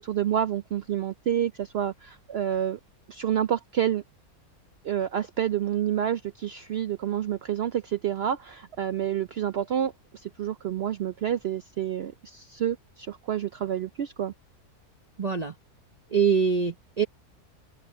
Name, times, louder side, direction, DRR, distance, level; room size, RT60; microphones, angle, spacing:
voice 1, 0.0-2.8 3.1-4.0 4.8-14.3, right 10 dB, 75° right, 0.5 m, -29 dB
voice 2, 15.2-15.5 16.1-17.0, right 6 dB, 30° right, 1.0 m, -24 dB
open air
omnidirectional pair, 1.6 m